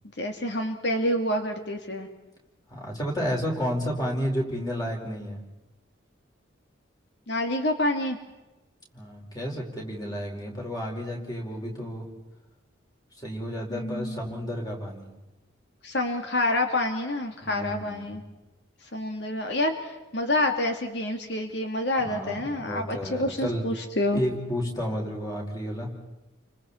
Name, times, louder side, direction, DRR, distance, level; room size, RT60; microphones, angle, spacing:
voice 1, 0.2-2.1 7.3-8.2 13.7-14.3 15.8-18.2 18.9-24.2, left 1 dB, 60° left, 4 dB, 2.1 m, -28 dB
voice 2, 2.7-5.4 8.9-12.1 13.2-15.1 17.4-18.2 22.0-23.6 24.1-25.9, equal, 20° left, -1 dB, 4.9 m, -31 dB
29.5 x 25.5 x 4.4 m, 1.0 s
head